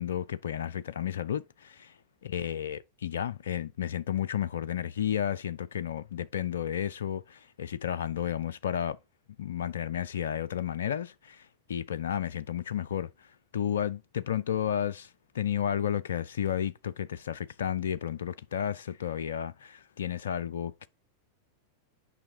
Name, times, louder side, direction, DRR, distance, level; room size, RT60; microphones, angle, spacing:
voice 1, 0.0-1.9 2.2-9.0 9.4-13.1 13.5-20.9, left 9 dB, 65° left, 0.4 m, -32 dB
8.6 x 5.4 x 2.7 m
figure-of-eight pair, 90°, 0 cm